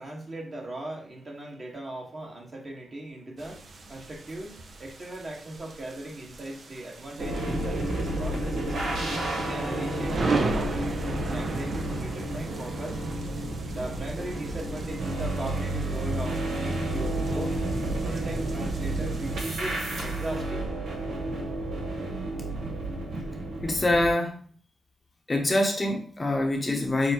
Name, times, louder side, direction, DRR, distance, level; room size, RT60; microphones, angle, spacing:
voice 1, 0.0-9.0 9.4-13.0 13.7-17.6 18.0-20.8, right 1 dB, 40° right, -1 dB, 1.4 m, -38 dB
sound 1, 3.4-19.5, right 3 dB, 55° right, 0.6 m, -37 dB
sound 2, 7.2-24.1, right 1 dB, 80° right, 1.2 m, -31 dB
voice 2, 23.6-24.5 25.3-27.1, left 1 dB, 30° left, 2 dB, 0.9 m, -25 dB
6.3 x 2.2 x 2.9 m, 0.44 s
cardioid pair, 60°, 0 cm